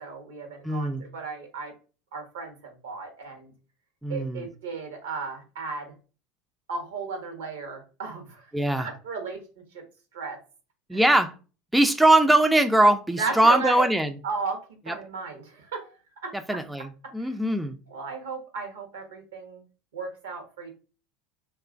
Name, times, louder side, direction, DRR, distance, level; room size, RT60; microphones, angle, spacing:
voice 1, 0.0-1.7 2.1-3.5 4.1-5.9 6.7-8.5 8.8-9.8 10.1-10.4 10.9-11.0 13.2-13.9 14.2-16.0 16.2-16.6 17.2-17.4 17.9-19.6 19.9-20.7, right 4 dB, 85° right, 4 dB, 0.8 m, -35 dB
voice 2, 0.6-1.0 4.0-4.5 8.5-8.9 10.9-11.3 11.7-14.1 16.5-16.9 17.1-17.8, right 1 dB, 5° right, 7 dB, 0.3 m, -21 dB
2.9 x 2.3 x 2.4 m, 0.34 s
hypercardioid pair, 90°, 0 cm